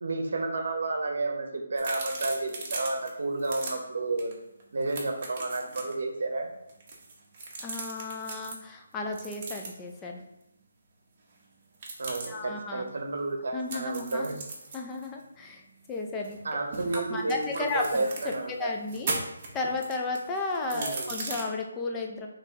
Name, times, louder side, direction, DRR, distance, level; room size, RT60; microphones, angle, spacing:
voice 1, 0.0-4.3 4.7-6.5 12.0-14.4 16.4-18.7 20.7-21.1, right 2 dB, 65° right, 4 dB, 0.8 m, -31 dB
sound 1, 1.8-3.1 3.4-3.7 4.2-4.3 4.6-5.9 6.7-8.6 9.1-9.9 11.7-12.3 13.7-16.4 16.7-18.4 18.8-21.4, right 3 dB, 30° right, 0.8 m, -38 dB
voice 2, 7.6-10.2 12.3-12.8 13.5-14.4 14.7-15.6 15.9-16.4 17.1-18.1 18.6-19.2 19.5-22.3, left 3 dB, 10° left, 1 dB, 0.4 m, -33 dB
4.2 x 3.2 x 3.5 m, 0.88 s
hypercardioid pair, 170°, 0 cm